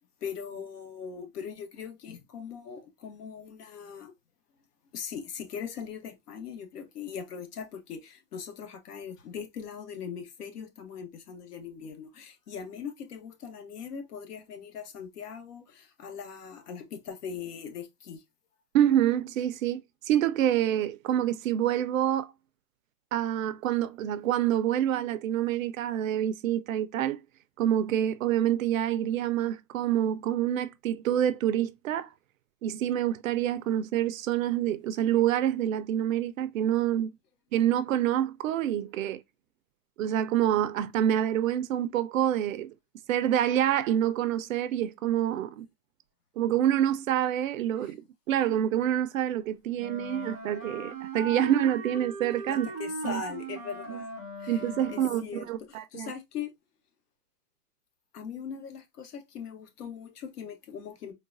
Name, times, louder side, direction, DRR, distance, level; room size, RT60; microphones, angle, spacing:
voice 1, 0.2-4.1 4.9-18.2 47.8-47.9 52.5-54.1 54.4-56.5 58.1-61.1, left 7 dB, 75° left, 1.2 m, -40 dB
voice 2, 18.7-22.3 23.1-27.2 27.6-32.1 32.6-37.1 37.5-39.2 40.0-42.7 43.1-45.7 46.4-48.0 48.3-52.7 53.0-53.2 53.9-54.0 54.5-55.2 55.5-56.1, right 11 dB, 60° right, 0.5 m, -27 dB
Wind instrument woodwind instrument, 49.7-55.3, right 2 dB, 5° right, 0.4 m, -39 dB
3.9 x 2.2 x 2.4 m
hypercardioid pair, 150°, 47 cm